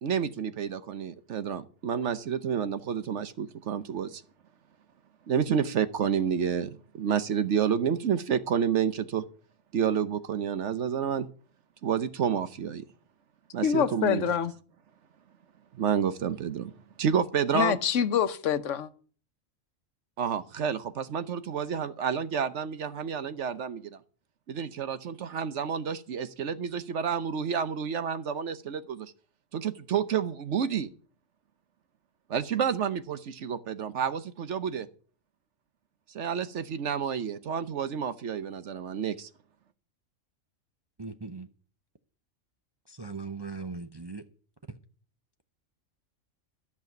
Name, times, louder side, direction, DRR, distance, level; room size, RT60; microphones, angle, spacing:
voice 1, 0.0-4.2 5.3-9.2 9.7-11.3 11.8-12.8 13.5-14.2 15.7-16.7 17.0-17.8 20.2-24.0 24.5-29.1 29.5-30.9 32.3-34.9 36.1-39.3, right 7 dB, 65° right, 1.1 m, -29 dB
voice 2, 13.6-14.5 17.5-18.9, left 8 dB, 70° left, 1.2 m, -26 dB
voice 3, 41.0-41.5 42.9-44.2, right 4 dB, 30° right, 0.5 m, -39 dB
13.0 x 5.9 x 9.2 m
omnidirectional pair, 1.4 m